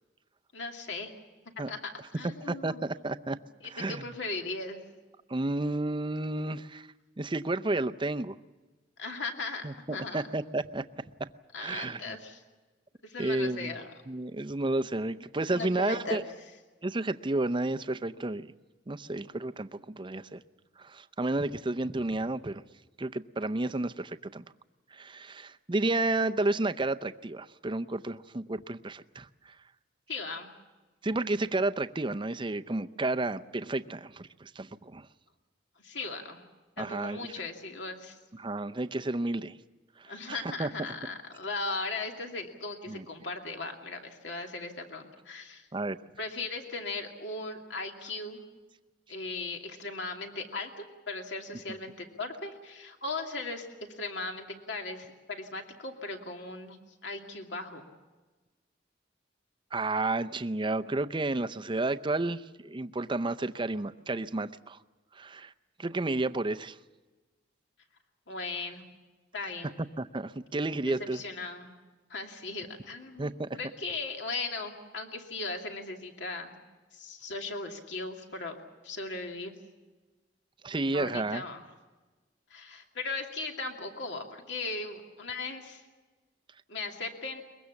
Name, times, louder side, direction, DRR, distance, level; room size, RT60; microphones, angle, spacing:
voice 1, 0.5-1.1 1.7-2.8 3.3-4.8 9.0-10.2 11.5-12.4 13.0-13.9 15.5-16.3 30.1-30.5 35.8-36.4 36.8-38.2 40.1-45.7 46.2-48.4 49.1-53.7 54.0-56.8 57.0-57.8 68.3-68.8 69.3-69.8 70.8-71.7 72.1-76.6 76.9-78.6 78.8-79.5 80.9-81.6 82.5-85.8 86.7-87.4, left 3 dB, 70° left, 3 dB, 2.5 m, -38 dB
voice 2, 2.5-3.4 3.7-4.0 5.3-6.9 7.2-8.4 9.6-9.7 10.1-10.8 11.2-11.3 11.6-12.2 13.2-13.7 14.1-16.2 16.8-18.5 18.9-20.4 20.8-22.6 23.0-24.4 24.9-29.3 31.0-35.1 36.8-37.3 38.4-39.5 40.0-40.7 42.9-43.1 45.7-46.0 59.7-64.8 65.2-65.5 65.8-66.8 70.0-71.2 73.2-73.5 80.6-81.4, right 2 dB, 25° right, 11 dB, 0.6 m, -31 dB
22.5 x 22.0 x 7.1 m, 1.2 s
head